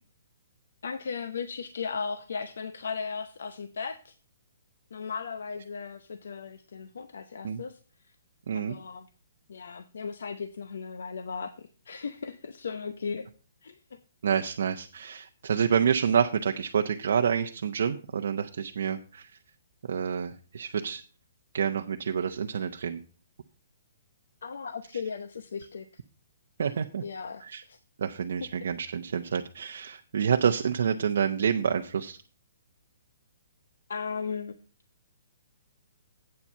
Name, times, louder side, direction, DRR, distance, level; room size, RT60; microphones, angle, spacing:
voice 1, 0.8-4.1 4.9-7.8 8.5-9.1 9.5-13.3 13.6-14.0 24.4-25.9 27.0-27.8 33.9-34.5, left 5 dB, 80° left, 11 dB, 0.7 m, -36 dB
voice 2, 8.5-8.8 14.2-19.3 19.9-21.0 21.5-23.0 26.6-27.0 27.4-27.6 28.0-32.2, right 7 dB, 65° right, 4 dB, 0.6 m, -28 dB
8.4 x 7.3 x 5.4 m, 0.38 s
hypercardioid pair, 165°, 0 cm